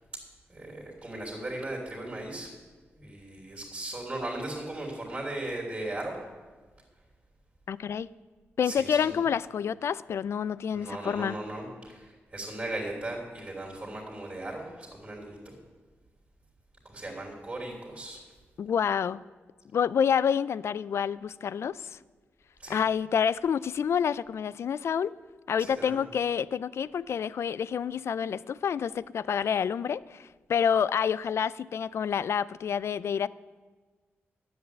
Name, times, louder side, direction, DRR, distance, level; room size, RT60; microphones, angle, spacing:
voice 1, 0.5-2.5 2.9-6.2 8.6-9.2 10.7-15.5 16.8-18.2 22.6-22.8 25.6-26.0, right 1 dB, 25° right, -4 dB, 3.1 m, -37 dB
voice 2, 7.7-8.1 8.6-11.4 18.6-19.2 19.7-22.0 22.7-25.1 25.5-33.3, left 7 dB, 70° left, 19 dB, 0.4 m, -28 dB
11.0 x 8.1 x 8.1 m, 1.4 s
wide cardioid pair, 120°, 5 cm